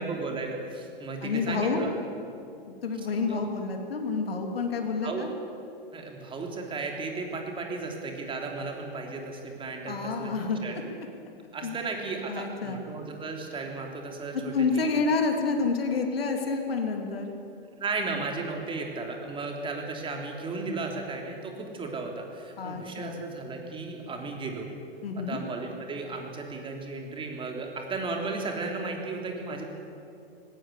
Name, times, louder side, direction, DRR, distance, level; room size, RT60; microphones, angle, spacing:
voice 1, 0.0-1.9 3.3-3.4 5.0-5.2 5.9-10.3 10.6-10.7 11.5-14.9 17.8-24.7 25.3-29.6, right 3 dB, 15° right, 2 dB, 3.3 m, -35 dB
voice 2, 1.2-1.9 2.8-5.3 9.9-10.6 11.6-11.8 12.3-12.8 14.5-17.3 18.0-18.1 22.6-23.2 25.0-25.4, left 4 dB, 75° left, 3 dB, 2.9 m, -28 dB
19.5 x 17.0 x 8.2 m, 2.6 s
hypercardioid pair, 115°, 30 cm